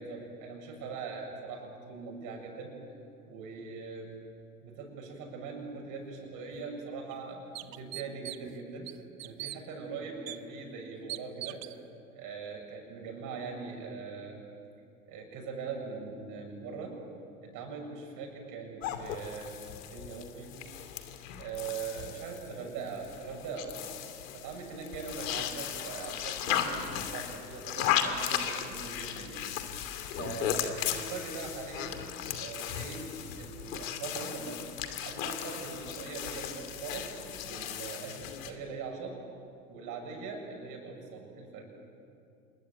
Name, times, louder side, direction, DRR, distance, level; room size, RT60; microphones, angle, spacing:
voice 1, 0.0-2.8 3.3-4.1 4.6-8.9 9.2-11.7 12.1-14.4 15.1-17.0 17.4-19.6 19.9-20.6 21.4-23.9 24.3-29.4 29.7-32.0 32.3-34.7 35.0-37.1 37.4-39.2 39.7-41.7, right 4 dB, 45° right, 2 dB, 7.4 m, -41 dB
sound 1, 6.5-6.6 7.1-7.2 7.5-8.5 8.9-9.6 10.3-10.4 11.1-11.8, right 16 dB, 65° right, 1.1 m, -40 dB
sound 2, 18.8-38.5, left 10 dB, 60° left, 2.6 m, -36 dB
27.0 x 22.0 x 8.8 m, 2.5 s
hypercardioid pair, 90°, 43 cm